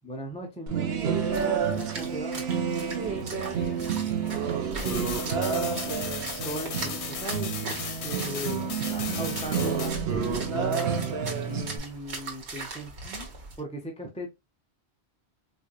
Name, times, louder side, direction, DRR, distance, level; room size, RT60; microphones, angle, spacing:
voice 1, 0.0-2.5 6.4-7.5 8.0-8.7 9.1-10.8 11.4-13.3 13.6-14.3, right 1 dB, 10° left, 0.5 m, -38 dB
sound 1, 0.7-11.8, right 6 dB, 70° right, 0.9 m, -29 dB
Splash splatter, 0.9-13.6, right 3 dB, 85° right, 1.3 m, -41 dB
voice 2, 3.0-6.2 8.9-9.3 9.8-9.9, equal, 40° left, 1.8 m, -42 dB
sound 2, 4.8-9.9, left 6 dB, 85° left, 1.0 m, -37 dB
4.1 x 2.6 x 2.3 m
omnidirectional pair, 1.1 m